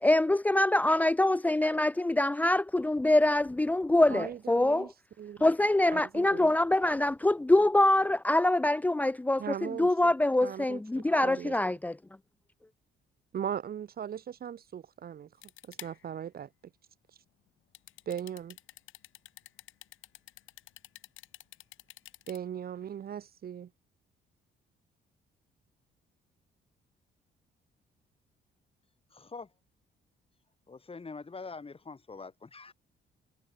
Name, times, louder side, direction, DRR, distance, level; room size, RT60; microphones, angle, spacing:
voice 1, 0.0-4.9 5.4-12.0, left 1 dB, 10° left, 0.4 m, -25 dB
voice 2, 4.1-4.9 5.2-5.5 5.9-6.5 9.4-9.9 10.4-11.5 13.3-15.3 15.7-16.5 18.1-18.6 22.3-23.7, right 9 dB, 50° right, 0.8 m, -38 dB
sound 1, 15.4-16.1 17.7-22.4, left 14 dB, 85° left, 2.6 m, -49 dB
voice 3, 29.1-29.5 30.7-32.7, left 4 dB, 30° left, 4.9 m, -44 dB
cardioid pair, 90°, 20 cm